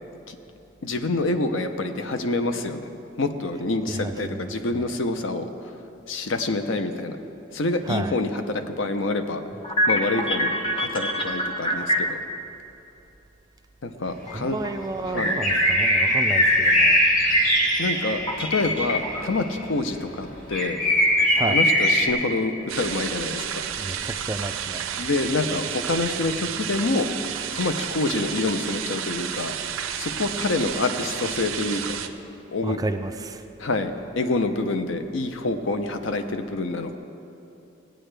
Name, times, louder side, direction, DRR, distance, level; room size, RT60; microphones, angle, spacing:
voice 1, 0.8-2.9 3.2-5.5 6.1-7.2 7.5-9.4 9.9-12.2 13.8-14.6 15.1-15.4 17.8-20.8 21.5-23.7 24.9-27.1 27.5-29.5 30.0-32.0 32.5-32.8 33.6-36.9, left 2 dB, 70° left, 8 dB, 0.6 m, -27 dB
voice 2, 3.9-4.9 7.9-8.2 14.3-17.0 21.3-21.6 23.8-24.8 32.6-33.4, right 2 dB, 20° right, 7 dB, 0.3 m, -31 dB
sound 1, 9.5-12.3 14.3-14.4 14.6-15.1 18.3-19.4 19.8-19.9 20.5-21.0, left 1 dB, 25° left, 0.7 m, -26 dB
sound 2, 14.1-14.2 14.9-19.3 19.6-19.7 19.9-20.0 20.2-22.1, equal, 40° left, 1.7 m, -21 dB
sound 3, 22.7-32.1, right 9 dB, 85° right, 0.5 m, -31 dB
16.5 x 8.9 x 3.3 m, 2.9 s
head